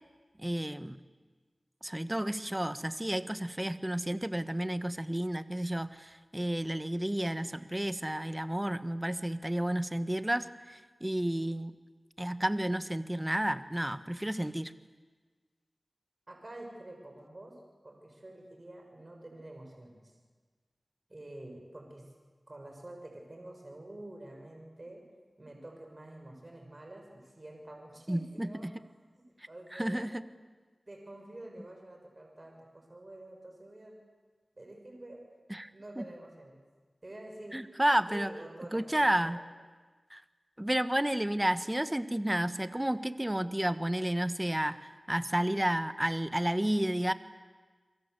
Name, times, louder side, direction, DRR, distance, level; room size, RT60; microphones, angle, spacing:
voice 1, 0.4-1.0 1.8-11.7 12.2-14.7 28.1-28.8 29.7-30.2 35.5-35.7 36.0-36.1 37.5-38.3 38.7-39.4 40.1-40.2 40.6-47.1, right 1 dB, 15° right, 11 dB, 1.3 m, -31 dB
voice 2, 16.3-17.5 17.8-20.1 21.1-22.0 22.5-25.0 25.4-28.7 29.5-30.1 30.9-34.0 34.5-35.2 35.7-36.5 37.0-37.6 38.1-39.4, right 1 dB, 45° right, 2 dB, 6.5 m, -48 dB
30.0 x 23.5 x 8.1 m, 1.4 s
wide cardioid pair, 45°, 0 cm